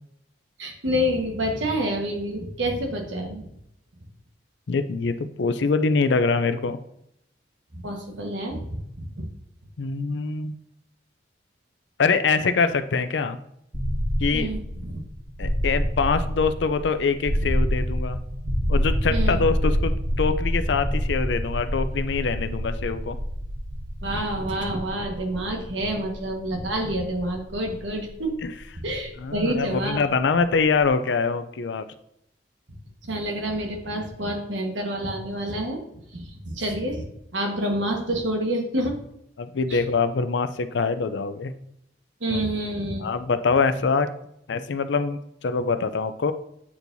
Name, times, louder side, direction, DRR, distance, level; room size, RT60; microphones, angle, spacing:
voice 1, 0.6-3.4 7.7-9.3 14.3-15.0 19.1-19.4 24.0-28.3 28.8-30.0 33.1-35.8 36.1-37.1 37.3-39.0 39.7-39.8 42.2-43.1, right 1 dB, 90° right, 2 dB, 1.4 m, -28 dB
voice 2, 4.7-6.8 9.8-10.6 12.0-13.4 14.2-14.5 15.4-18.2 18.7-23.2 29.2-31.8 39.4-41.5 42.3-42.4 43.0-44.1 44.5-46.3, left 4 dB, 70° left, 11 dB, 0.5 m, -24 dB
sound 1, 13.7-29.6, equal, 30° right, 1.3 m, -27 dB
8.4 x 4.5 x 2.7 m, 0.77 s
head